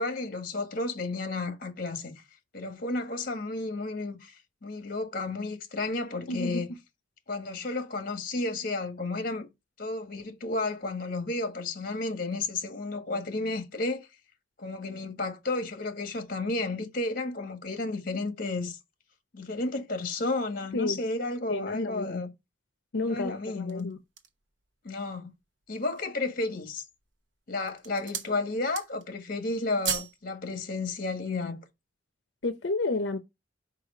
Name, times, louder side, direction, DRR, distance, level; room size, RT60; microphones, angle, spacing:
voice 1, 0.0-2.2 2.5-4.3 4.6-6.7 7.3-9.5 9.8-14.1 14.6-18.8 19.3-22.3 23.0-23.9 24.8-25.3 25.7-26.8 27.5-31.6, left 2 dB, 55° left, 1.5 m, -32 dB
voice 2, 6.3-6.6 20.7-21.0 21.5-22.2 22.9-24.0 32.4-33.2, left 3 dB, 90° left, 0.7 m, -31 dB
sound 1, 23.5-24.5 25.1-25.2 25.6-26.2 26.9-27.2 27.6-28.4 28.6-29.2 29.4-30.2 30.5-30.7, right 8 dB, 90° right, 0.9 m, -36 dB
4.9 x 4.7 x 4.9 m
head